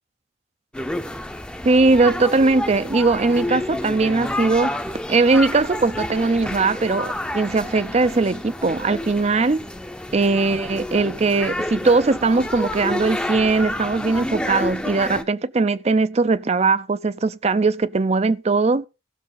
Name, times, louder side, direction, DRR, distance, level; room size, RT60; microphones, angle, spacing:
sound 1, 0.7-15.2, left 1 dB, 5° left, 0.7 m, -30 dB
voice 1, 1.6-4.8 5.1-9.7 10.1-18.9, right 3 dB, 35° right, 0.5 m, -20 dB
17.0 x 6.5 x 3.9 m
head